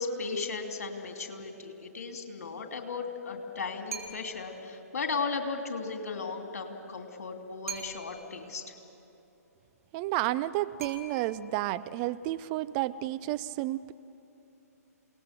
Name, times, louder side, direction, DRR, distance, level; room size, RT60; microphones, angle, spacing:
voice 1, 0.0-8.7, left 4 dB, 65° left, 4 dB, 3.0 m, -36 dB
sound 1, 3.9-4.5 7.7-8.4 10.8-11.6, right 6 dB, 65° right, 4.0 m, -42 dB
voice 2, 9.9-13.9, right 15 dB, 30° right, 14 dB, 0.5 m, -31 dB
28.5 x 19.0 x 6.8 m, 3.0 s
figure-of-eight pair, 125°, 9 cm